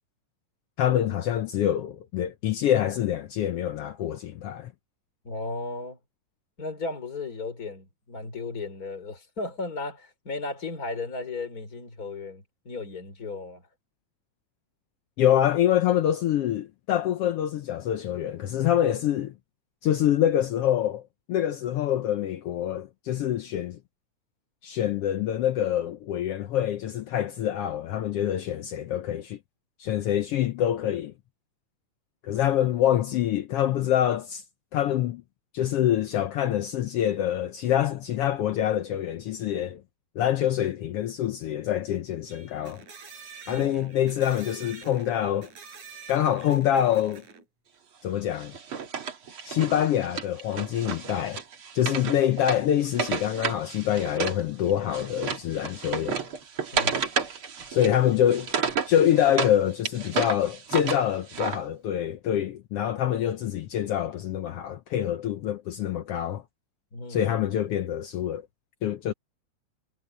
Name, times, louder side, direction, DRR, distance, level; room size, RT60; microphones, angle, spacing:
voice 1, 0.8-4.7 15.2-19.3 19.8-21.0 21.3-23.8 24.6-29.4 29.8-31.1 32.2-34.4 34.7-35.2 35.5-39.8 40.2-42.8 43.5-45.5 46.1-47.2 48.0-48.5 49.4-51.4 51.7-56.2 57.7-58.5 58.9-66.4 67.1-68.4 68.8-69.1, left 11 dB, 75° left, 1.5 m, -25 dB
voice 2, 5.2-6.0 6.6-13.6 43.5-44.0 52.1-52.2 56.7-57.0 66.9-67.3, left 3 dB, 30° left, 4.6 m, -35 dB
sound 1, 42.3-47.4, right 5 dB, 80° right, 6.8 m, -46 dB
Wood, 48.4-54.4 54.7-59.6 59.9-61.6, right 6 dB, 50° right, 2.8 m, -32 dB
omnidirectional pair, 3.3 m